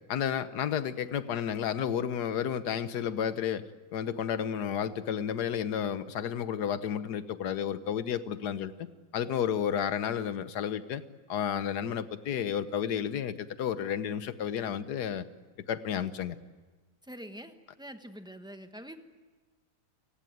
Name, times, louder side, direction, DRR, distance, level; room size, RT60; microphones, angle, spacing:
voice 1, 0.1-8.9 9.1-11.0 11.3-15.2 15.7-16.4, left 8 dB, 75° left, 13 dB, 1.5 m, -32 dB
voice 2, 17.0-19.0, equal, 5° right, 7 dB, 1.2 m, -45 dB
29.5 x 17.5 x 9.3 m, 1.3 s
omnidirectional pair, 1.8 m